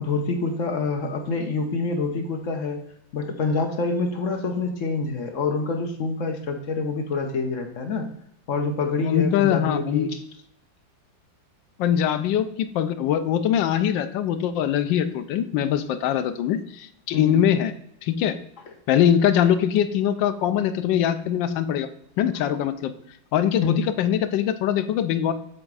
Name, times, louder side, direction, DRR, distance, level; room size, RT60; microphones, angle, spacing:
voice 1, 0.0-2.8 3.1-8.1 8.5-10.2 17.1-17.4 18.7-18.8 23.6-23.8, left 3 dB, 55° left, 4 dB, 0.9 m, -26 dB
voice 2, 9.0-10.1 11.8-17.7 18.0-18.4 18.9-21.9 22.2-22.9 23.3-25.3, left 10 dB, 75° left, 11 dB, 1.2 m, -22 dB
7.6 x 3.5 x 4.7 m, 0.73 s
omnidirectional pair, 2.1 m